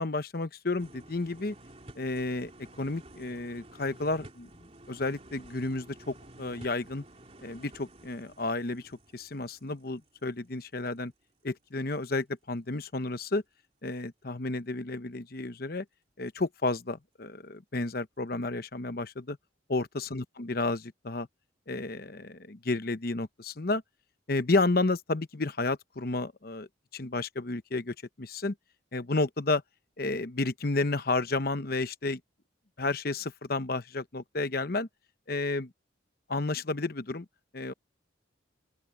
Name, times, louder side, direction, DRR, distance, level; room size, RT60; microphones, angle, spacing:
voice 1, 0.0-1.5 2.0-2.5 2.8-4.5 4.9-7.0 7.4-11.1 11.4-13.4 13.8-15.8 16.2-19.4 19.7-21.3 21.7-23.8 24.3-26.7 26.9-28.5 28.9-29.6 30.0-32.2 32.8-34.9 35.3-35.7 36.3-37.2 37.5-37.7, left 2 dB, 50° left, 0.9 m, -31 dB
sound 1, 0.8-10.6 11.0-11.1, right 1 dB, 30° right, 3.3 m, -52 dB
open air
head